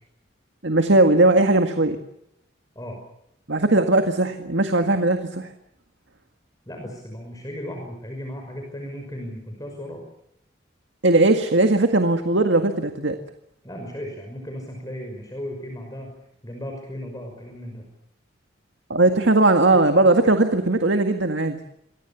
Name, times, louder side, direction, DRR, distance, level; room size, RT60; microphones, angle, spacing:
voice 1, 0.6-2.0 3.5-5.5 11.0-13.2 18.9-21.6, right 2 dB, 70° right, 6 dB, 1.9 m, -18 dB
voice 2, 6.7-10.0 13.6-16.1 16.4-17.8, equal, 20° left, 2 dB, 5.6 m, -35 dB
27.5 x 23.0 x 7.2 m, 0.78 s
head